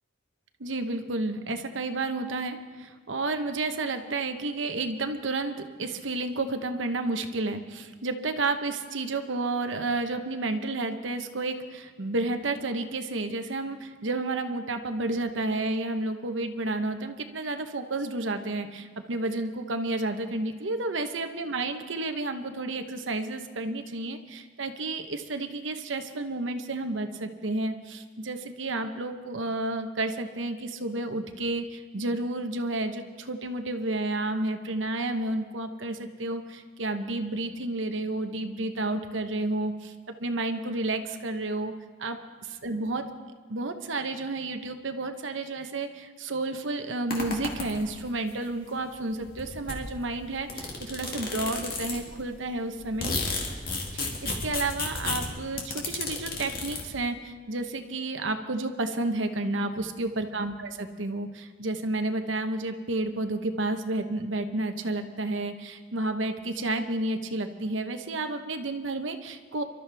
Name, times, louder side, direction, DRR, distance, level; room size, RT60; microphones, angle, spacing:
voice 1, 0.6-39.9 40.2-41.7 42.0-42.2 42.6-43.1 43.5-53.1 53.9-69.6, right 2 dB, 80° right, 7 dB, 1.0 m, -31 dB
Comb Bristles, 47.1-48.1 48.9-49.0 49.2-52.2 52.6-56.8, left 3 dB, 50° left, 2.1 m, -33 dB
25.0 x 12.5 x 3.4 m, 1.5 s
head